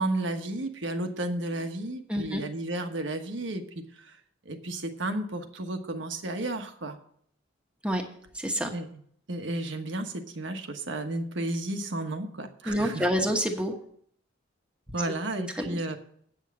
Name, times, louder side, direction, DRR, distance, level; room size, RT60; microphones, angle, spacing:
voice 1, 0.0-4.2 4.4-7.0 8.7-8.9 9.3-13.1 14.9-16.0, right 2 dB, 80° right, 6 dB, 1.3 m, -33 dB
voice 2, 2.1-2.4 7.8-8.0 8.3-8.7 12.6-13.7 15.6-16.0, equal, 5° right, 3 dB, 1.1 m, -28 dB
9.0 x 6.4 x 7.3 m, 0.64 s
head